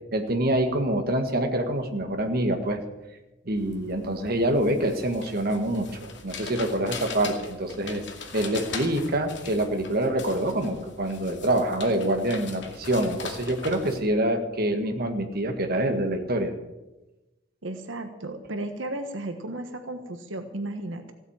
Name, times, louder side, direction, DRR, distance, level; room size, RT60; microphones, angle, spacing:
voice 1, 0.1-2.8 3.5-8.0 8.3-16.5, right 1 dB, 55° right, 5 dB, 1.7 m, -26 dB
sound 1, 3.6-14.0, left 5 dB, 65° left, 2.3 m, -40 dB
voice 2, 17.6-21.1, right 2 dB, 85° right, 6 dB, 1.3 m, -34 dB
16.0 x 8.1 x 8.8 m, 1.0 s
head